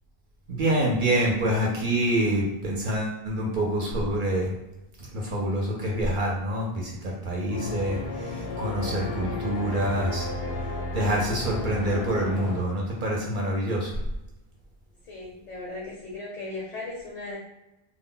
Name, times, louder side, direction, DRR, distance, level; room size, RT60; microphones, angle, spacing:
voice 1, 0.5-4.5 5.0-10.3 10.9-13.9, right 1 dB, 60° right, -2 dB, 0.7 m, -26 dB
sound 1, 7.5-12.6, left 3 dB, 85° left, 0.8 m, -32 dB
voice 2, 15.0-17.4, left 2 dB, 50° left, -3 dB, 0.6 m, -37 dB
2.1 x 2.1 x 3.7 m, 0.96 s
omnidirectional pair, 1.0 m